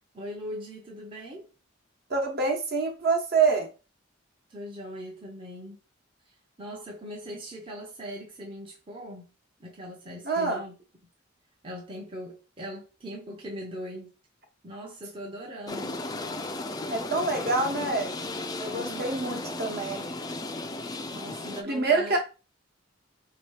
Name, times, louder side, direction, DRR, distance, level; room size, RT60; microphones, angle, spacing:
voice 1, 0.1-1.5 4.5-5.8 6.3-9.3 9.6-10.7 11.6-14.1 14.6-16.0 18.7-19.4 21.1-22.2, equal, 25° right, 0.7 m, -40 dB
voice 2, 2.1-3.7 10.2-10.6 16.9-18.1 18.6-20.1 21.6-22.2, right 4 dB, 50° right, 1.1 m, -26 dB
sound 1, 15.7-21.6, left 2 dB, 20° left, 0.4 m, -35 dB
3.6 x 2.9 x 4.7 m
head